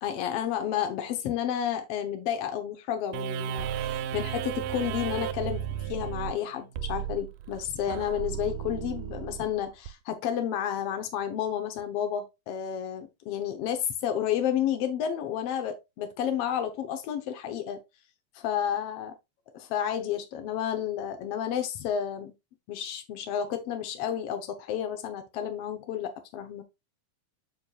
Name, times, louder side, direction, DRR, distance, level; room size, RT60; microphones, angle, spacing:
voice 1, 0.0-17.8 18.3-19.1 19.6-22.3 22.7-26.6, left 9 dB, 75° left, 1.4 m, -31 dB
sound 1, 3.1-9.9, right 10 dB, 85° right, 2.2 m, -34 dB
6.9 x 6.4 x 2.3 m
omnidirectional pair, 3.8 m